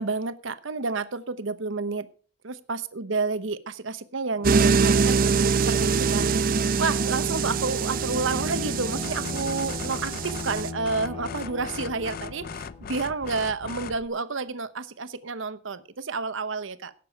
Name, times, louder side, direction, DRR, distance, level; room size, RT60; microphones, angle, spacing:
voice 1, 0.0-2.1 2.4-16.9, right 4 dB, 80° right, 13 dB, 0.9 m, -30 dB
Bowed string instrument, 4.4-12.9, left 3 dB, 30° left, 2.1 m, -38 dB
sound 1, 4.4-10.7, right 5 dB, 45° right, 0.5 m, -24 dB
sound 2, 9.0-14.1, left 6 dB, 45° left, 0.4 m, -39 dB
17.0 x 6.9 x 4.6 m, 0.41 s
head